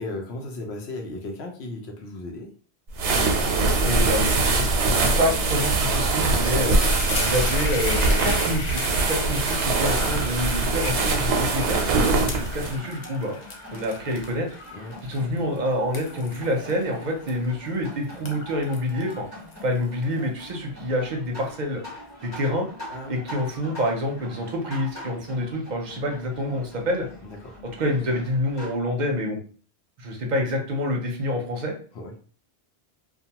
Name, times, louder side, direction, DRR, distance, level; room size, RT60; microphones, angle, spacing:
voice 1, 0.0-2.5 14.7-15.0 22.9-23.2 27.2-27.6 31.9-32.1, left 2 dB, 75° left, 3 dB, 0.9 m, -36 dB
sound 1, 2.9-12.8, right 3 dB, 90° right, 0.9 m, -22 dB
voice 2, 3.8-6.8 7.2-13.4 13.7-14.6 15.1-19.3 19.6-21.8 22.2-22.7 23.1-27.1 27.8-29.4 30.0-31.7, equal, 50° right, 2 dB, 0.7 m, -27 dB
sound 2, 6.4-17.8 18.1-20.0, left 3 dB, 55° left, 0.5 m, -36 dB
sound 3, 10.2-28.7, left 1 dB, 15° left, 0.9 m, -44 dB
2.4 x 2.2 x 2.8 m, 0.42 s
omnidirectional pair, 1.1 m